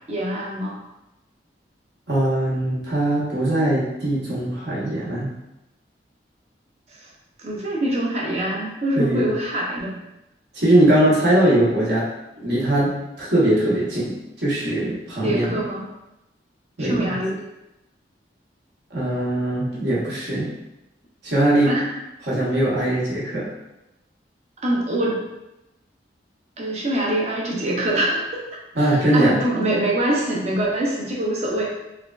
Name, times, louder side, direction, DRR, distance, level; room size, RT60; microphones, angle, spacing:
voice 1, 0.1-0.8 7.0-7.1 7.4-10.0 15.2-15.9 16.8-17.4 21.7-21.8 24.6-25.2 26.6-28.4 28.8-31.7, right 1 dB, 35° right, -3 dB, 0.5 m, -24 dB
voice 2, 2.1-5.3 9.0-9.3 10.5-12.0 12.4-15.6 16.8-17.1 18.9-20.5 21.2-21.8 22.2-23.5 28.7-29.4, right 1 dB, 65° right, -7 dB, 0.9 m, -21 dB
3.2 x 2.3 x 2.3 m, 0.93 s
head